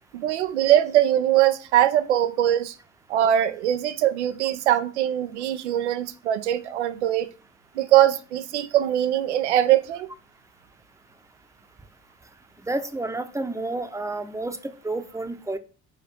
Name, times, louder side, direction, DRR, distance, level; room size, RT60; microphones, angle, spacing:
voice 1, 0.1-2.7 3.1-7.3 7.8-10.1, right 12 dB, 70° right, 0.7 m, -21 dB
voice 2, 12.6-15.6, right 2 dB, 10° right, 0.8 m, -30 dB
6.8 x 5.0 x 4.4 m
figure-of-eight pair, 55°, 36 cm